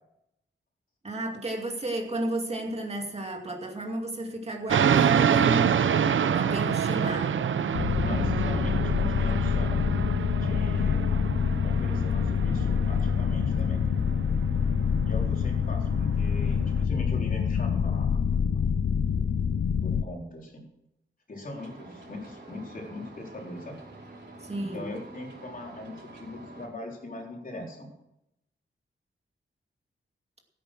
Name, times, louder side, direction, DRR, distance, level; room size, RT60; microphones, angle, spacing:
voice 1, 1.0-5.7 6.3-7.4 24.4-24.9, right 1 dB, 30° right, 1 dB, 2.4 m, -33 dB
sound 1, 4.7-16.8, right 8 dB, 85° right, 0.7 m, -27 dB
sound 2, 7.7-20.0, left 7 dB, 85° left, 0.8 m, -26 dB
voice 2, 8.0-9.8 10.3-11.3 11.6-13.8 15.0-18.2 18.5-18.6 19.8-20.7 21.3-23.8 24.7-27.9, left 2 dB, 45° left, 0 dB, 3.9 m, -40 dB
sound 3, 21.5-26.7, right 2 dB, 60° right, 5.2 m, -47 dB
16.0 x 9.2 x 6.2 m, 0.84 s
wide cardioid pair, 135°, 20 cm